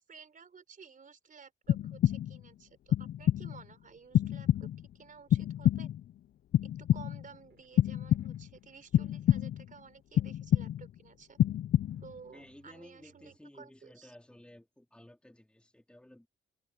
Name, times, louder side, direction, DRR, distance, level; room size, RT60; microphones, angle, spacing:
voice 1, 0.0-4.7 4.9-5.9 6.6-11.4 12.0-14.2, right 6 dB, 40° right, 4.2 m, -54 dB
sound 1, 1.7-2.5 2.9-3.6 4.1-4.9 5.3-6.1 6.5-7.3 7.8-8.6 8.9-9.7 10.2-11.0 11.4-12.2, left 11 dB, 55° left, 0.5 m, -28 dB
sound 2, 7.4-9.8 11.8-13.4, right 10 dB, 70° right, 7.2 m, -67 dB
voice 2, 12.3-16.3, left 1 dB, 5° left, 3.4 m, -55 dB
cardioid pair, 90°, 20 cm